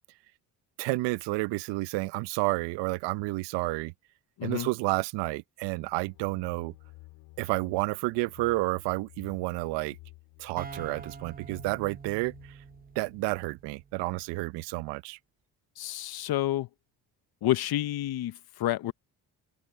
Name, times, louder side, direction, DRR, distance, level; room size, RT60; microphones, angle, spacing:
voice 1, 0.8-3.9 4.4-6.7 7.4-10.0 10.4-12.6 13.0-15.2, right 21 dB, 85° right, 0.8 m, -30 dB
voice 2, 4.4-4.7 15.8-16.7 17.4-18.9, left 14 dB, 65° left, 1.0 m, -29 dB
sound 1, 5.6-13.3, left 21 dB, 90° left, 2.8 m, -54 dB
sound 2, 10.6-14.2, right 5 dB, 20° right, 0.8 m, -46 dB
open air
supercardioid pair, 65°, 41 cm